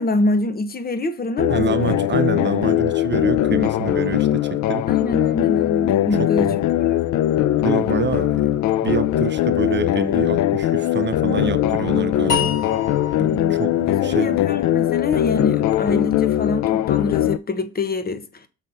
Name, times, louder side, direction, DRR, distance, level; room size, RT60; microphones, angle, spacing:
voice 1, 0.0-2.0 4.9-6.5 6.8-7.1 11.3-11.8 13.2-13.6 13.9-18.5, left 3 dB, 30° left, 1.0 m, -25 dB
sound 1, 1.4-17.4, left 13 dB, 65° left, 0.5 m, -20 dB
voice 2, 1.5-4.9 6.2-6.6 7.6-12.6 13.2-14.4, right 7 dB, 35° right, 0.6 m, -27 dB
sound 2, 12.3-15.5, left 7 dB, 85° left, 3.1 m, -30 dB
6.4 x 3.9 x 5.6 m
cardioid pair, 90°, 30 cm